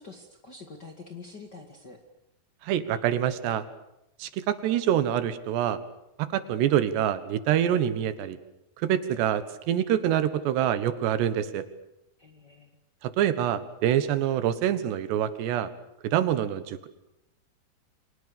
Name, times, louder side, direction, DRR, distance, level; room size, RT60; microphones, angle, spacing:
voice 1, 0.0-2.0 12.2-12.8, left 4 dB, 35° left, 5 dB, 1.8 m, -46 dB
voice 2, 2.6-3.7 4.2-5.8 6.2-8.4 8.8-11.7 13.0-15.7 16.0-16.9, right 10 dB, 85° right, 13 dB, 3.6 m, -26 dB
29.5 x 26.0 x 6.9 m, 0.86 s
omnidirectional pair, 4.8 m